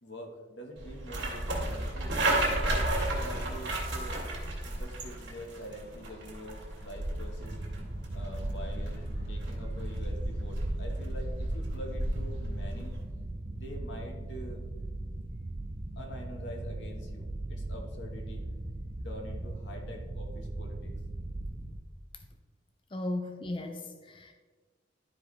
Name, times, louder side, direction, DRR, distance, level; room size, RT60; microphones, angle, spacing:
voice 1, 0.0-4.3 4.6-7.6 8.1-13.0 13.5-14.6 16.0-18.5 19.0-20.9, equal, 80° left, 2 dB, 1.4 m, -45 dB
sound 1, 0.8-13.0, right 1 dB, 85° right, 2.2 m, -33 dB
sound 2, 7.4-21.8, right 1 dB, 35° right, 0.5 m, -39 dB
voice 2, 22.9-24.3, left 2 dB, 30° left, 5 dB, 0.5 m, -36 dB
12.5 x 4.8 x 3.3 m, 1.4 s
head